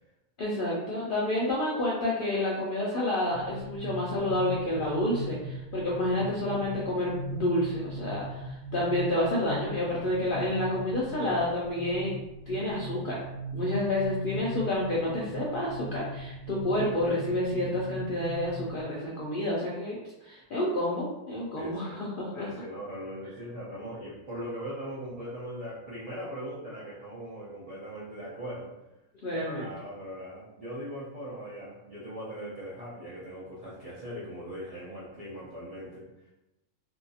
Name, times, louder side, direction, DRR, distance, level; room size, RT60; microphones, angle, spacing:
voice 1, 0.4-12.2 12.5-13.2 13.5-22.5 29.2-29.7, left 1 dB, 65° left, -5 dB, 0.5 m, -29 dB
sound 1, 3.3-18.8, right 1 dB, 30° left, 1.1 m, -39 dB
voice 2, 21.6-22.0 22.3-28.7 29.3-36.3, equal, 50° right, -9 dB, 0.4 m, -40 dB
2.7 x 2.3 x 2.6 m, 0.95 s
omnidirectional pair, 1.4 m